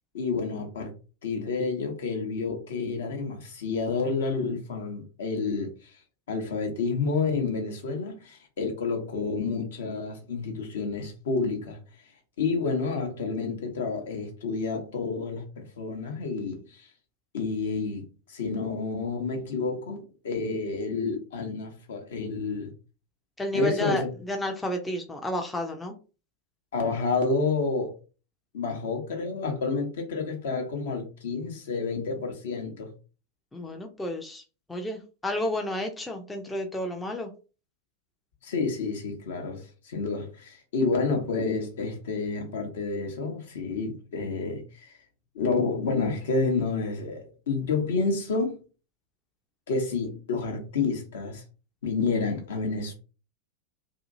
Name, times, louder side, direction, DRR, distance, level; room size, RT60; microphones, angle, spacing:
voice 1, 0.1-0.9 1.2-6.0 6.3-11.8 12.4-16.9 17.3-22.7 23.5-24.1 26.7-28.0 28.5-32.9 38.4-45.0 45.3-48.6 49.7-51.4 51.8-52.9, left 4 dB, 60° left, 0.8 m, -29 dB
voice 2, 23.4-24.0 24.3-25.9 33.5-34.4 34.7-37.3, left 1 dB, 10° left, 0.5 m, -31 dB
2.7 x 2.5 x 2.5 m
figure-of-eight pair, 90°, 0 cm